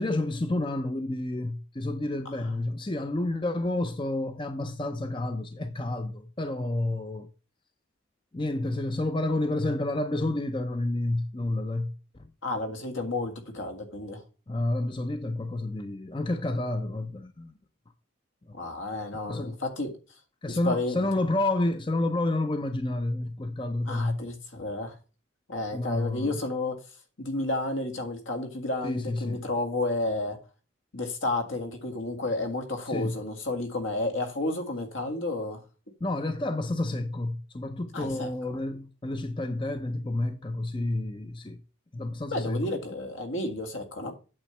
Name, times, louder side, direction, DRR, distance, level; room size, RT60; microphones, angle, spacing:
voice 1, 0.0-7.3 8.3-11.9 14.5-17.5 18.5-18.6 19.3-19.6 20.4-24.2 25.7-26.4 28.8-29.4 32.9-33.2 36.0-41.6 41.9-42.7, left 2 dB, 25° left, 0.6 m, -30 dB
voice 2, 12.4-14.2 18.5-19.9 20.5-21.0 23.9-25.0 25.5-26.8 27.2-30.4 30.9-35.6 37.9-38.3 42.3-44.1, left 2 dB, 70° left, 1.9 m, -31 dB
8.8 x 6.9 x 3.2 m
head